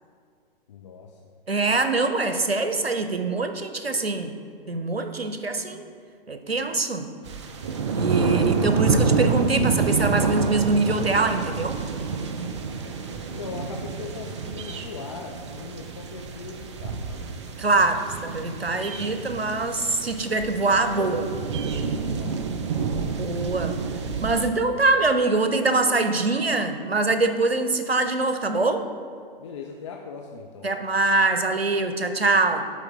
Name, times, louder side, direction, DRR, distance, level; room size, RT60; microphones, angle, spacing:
voice 1, 0.7-1.2 13.3-17.3 22.0-22.9 29.4-30.7, left 5 dB, 30° left, 1 dB, 0.4 m, -39 dB
voice 2, 1.5-4.3 4.7-5.8 6.3-7.1 7.9-11.8 17.6-21.3 23.1-23.8 24.2-28.9 30.6-32.6, right 3 dB, 90° right, 8 dB, 0.7 m, -23 dB
sound 1, 7.2-24.5, right 5 dB, 30° right, 0.4 m, -28 dB
11.5 x 4.2 x 3.5 m, 2.1 s
figure-of-eight pair, 120°, 30 cm